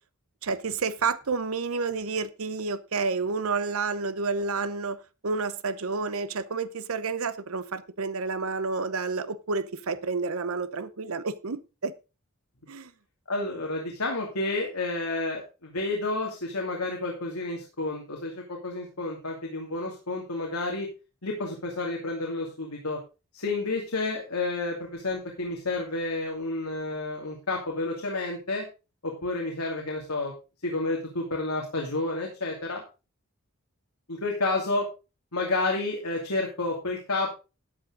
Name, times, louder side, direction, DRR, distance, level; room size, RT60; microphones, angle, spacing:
voice 1, 0.4-11.9 12.7-12.9, right 4 dB, 70° right, 0.8 m, -30 dB
voice 2, 13.3-20.9 21.2-23.0 23.3-28.6 29.0-30.3 30.6-32.8 34.1-34.9 35.3-37.3, left 2 dB, 90° left, 2.7 m, -30 dB
12.5 x 8.6 x 3.8 m
head